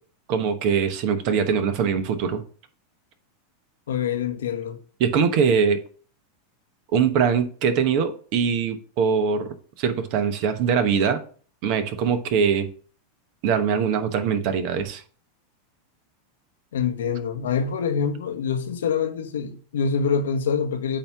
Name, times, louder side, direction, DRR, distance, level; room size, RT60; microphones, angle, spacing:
voice 1, 0.3-2.4 5.0-5.8 6.9-11.2 11.6-12.7 13.4-15.0, right 6 dB, 55° right, 1.0 m, -22 dB
voice 2, 3.9-4.8 16.7-21.0, left 6 dB, 80° left, 0.9 m, -25 dB
8.6 x 2.9 x 5.9 m
hypercardioid pair, 105°, 0 cm